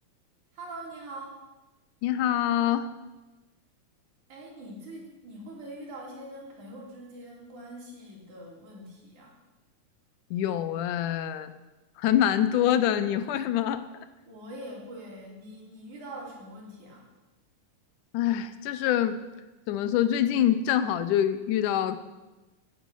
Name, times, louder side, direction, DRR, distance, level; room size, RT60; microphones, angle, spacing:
voice 1, 0.5-1.4 4.3-9.4 14.3-17.1, right 1 dB, 75° right, -3 dB, 5.0 m, -43 dB
voice 2, 2.0-2.9 10.3-11.5 12.0-13.9 18.1-19.2 19.7-22.0, left 10 dB, 85° left, 12 dB, 2.3 m, -25 dB
15.5 x 9.7 x 6.4 m, 1.1 s
omnidirectional pair, 3.5 m